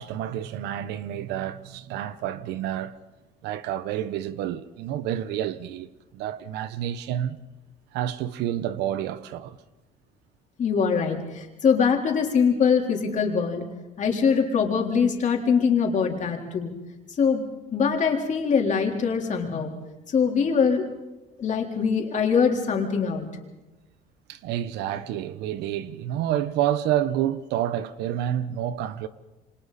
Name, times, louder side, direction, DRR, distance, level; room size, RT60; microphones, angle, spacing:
voice 1, 0.0-2.9 3.4-7.4 7.9-9.6 24.3-29.1, right 11 dB, 90° right, 1.0 m, -29 dB
voice 2, 10.6-13.6 14.0-16.7 17.2-17.4 17.7-19.7 20.1-20.9 21.4-23.3, left 6 dB, 45° left, 4.0 m, -23 dB
28.0 x 25.5 x 4.3 m
cardioid pair, 110°, 17 cm